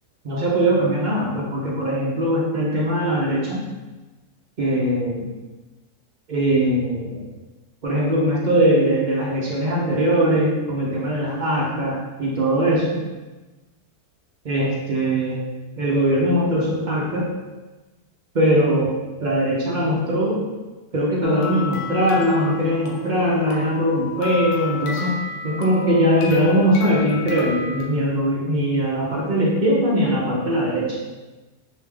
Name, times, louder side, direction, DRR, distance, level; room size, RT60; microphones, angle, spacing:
voice 1, 0.2-3.7 4.6-5.3 6.3-7.2 7.8-13.0 14.4-15.4 15.8-17.3 18.3-18.9 19.2-20.4 20.9-25.2 25.4-31.0, equal, 65° right, -5 dB, 0.4 m, -21 dB
sound 1, 21.2-27.8, left 5 dB, 80° left, 1.1 m, -33 dB
3.3 x 2.8 x 3.2 m, 1.2 s
omnidirectional pair, 1.7 m